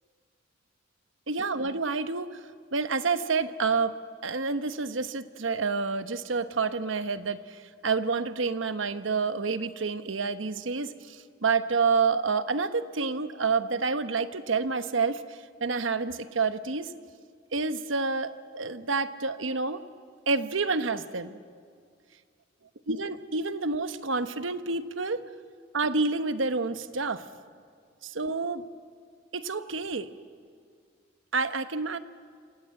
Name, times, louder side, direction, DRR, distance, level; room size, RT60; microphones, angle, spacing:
voice 1, 1.3-2.4 2.7-16.9 17.5-19.8 20.3-21.4 22.9-25.2 25.7-27.2 28.0-28.6 29.3-30.1 31.3-32.0, right 4 dB, 80° right, 11 dB, 1.1 m, -28 dB
27.0 x 27.0 x 7.7 m, 2.2 s
head